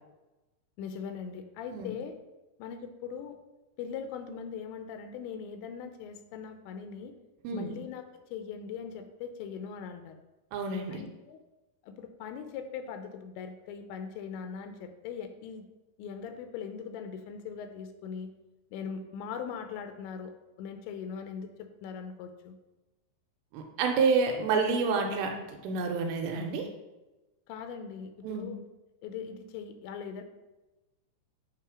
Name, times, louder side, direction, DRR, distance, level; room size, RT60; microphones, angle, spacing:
voice 1, 0.8-2.2 2.6-3.4 3.8-7.1 7.5-10.2 10.9-11.4 11.8-15.7 16.0-18.3 18.7-22.5 27.5-28.6 29.0-30.2, left 6 dB, 85° left, 7 dB, 2.9 m, -40 dB
voice 2, 10.5-11.0 23.5-26.7 28.2-28.5, right 4 dB, 80° right, 3 dB, 2.8 m, -29 dB
8.5 x 3.2 x 4.9 m, 1.1 s
omnidirectional pair, 5.1 m